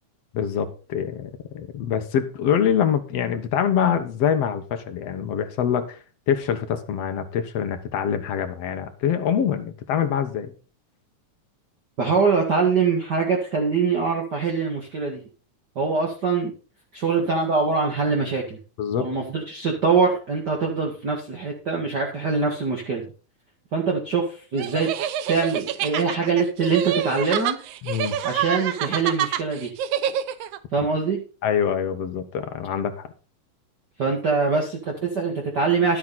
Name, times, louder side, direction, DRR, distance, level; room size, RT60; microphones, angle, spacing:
voice 1, 0.3-6.0 6.3-10.5 18.8-19.1 27.8-28.2 31.4-32.9, left 8 dB, 60° left, 8 dB, 2.0 m, -25 dB
voice 2, 12.0-15.2 15.8-16.5 16.9-18.6 19.0-23.1 23.7-24.9 25.3-27.6 28.2-29.7 30.7-31.2 34.0-36.0, right 4 dB, 35° right, 0 dB, 2.2 m, -23 dB
sound 1, 24.6-30.6, right 10 dB, 75° right, 1.5 m, -27 dB
12.0 x 8.6 x 4.2 m, 0.36 s
omnidirectional pair, 3.6 m